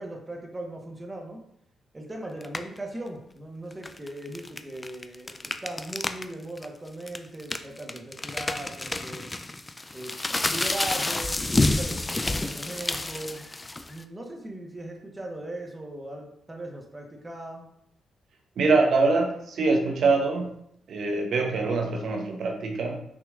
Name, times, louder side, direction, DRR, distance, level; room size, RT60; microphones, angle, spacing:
voice 1, 0.0-1.4 1.9-9.3 9.9-13.5 13.9-17.7, right 1 dB, 20° right, 1 dB, 1.2 m, -39 dB
sound 1, 2.4-2.8 3.7-6.2 6.6-6.7 7.1-14.0, left 2 dB, 20° left, 0.4 m, -29 dB
voice 2, 18.6-20.5 20.9-23.0, right 3 dB, 70° right, 2 dB, 0.8 m, -24 dB
6.2 x 2.9 x 2.4 m, 0.71 s
supercardioid pair, 60°, 0 cm